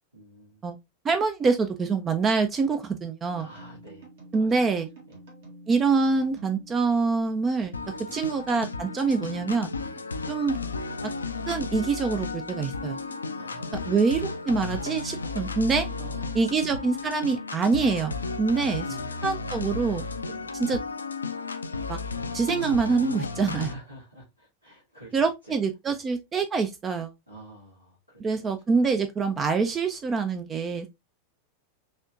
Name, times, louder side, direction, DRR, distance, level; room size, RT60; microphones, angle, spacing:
voice 1, 0.1-0.7 3.3-4.1 4.4-4.5 5.1-5.2 8.0-8.3 9.9-10.0 13.4-14.0 16.0-16.7 18.8-19.6 20.2-20.5 23.4-25.6 25.9-26.0 27.3-28.5, equal, 85° right, 1.7 m, -47 dB
voice 2, 1.0-3.5 4.3-4.9 5.7-7.7 8.1-9.7 10.3-10.6 11.5-13.0 13.9-15.9 16.4-18.9 19.2-20.0 20.7-20.8 21.9-22.0 22.3-23.7 25.1-27.1 28.2-30.9, right 4 dB, 20° right, 0.4 m, -25 dB
sound 1, 3.3-17.7, right 1 dB, 55° right, 1.5 m, -49 dB
sound 2, 7.7-23.7, left 4 dB, 75° left, 0.4 m, -34 dB
4.1 x 2.8 x 2.4 m
figure-of-eight pair, 90°, 0 cm